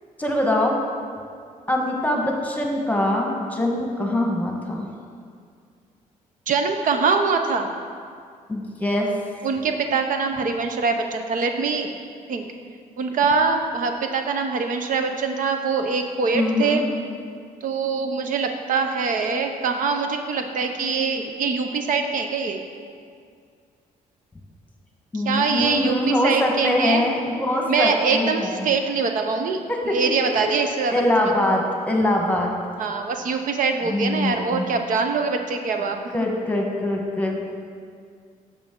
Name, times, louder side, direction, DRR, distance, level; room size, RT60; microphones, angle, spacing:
voice 1, 0.2-0.8 1.7-4.9 8.5-9.2 16.3-16.8 25.1-28.7 29.7-30.6 30.9-32.6 33.8-34.6 36.1-37.4, left 1 dB, 10° left, 0 dB, 1.3 m, -23 dB
voice 2, 6.5-7.7 9.4-11.9 12.3-12.4 13.0-16.8 17.6-22.6 25.1-27.0 27.7-29.6 29.9-30.9 31.2-31.3 32.8-36.0, right 4 dB, 65° right, 5 dB, 0.7 m, -23 dB
10.5 x 6.9 x 3.7 m, 2.2 s
cardioid pair, 110°, 15 cm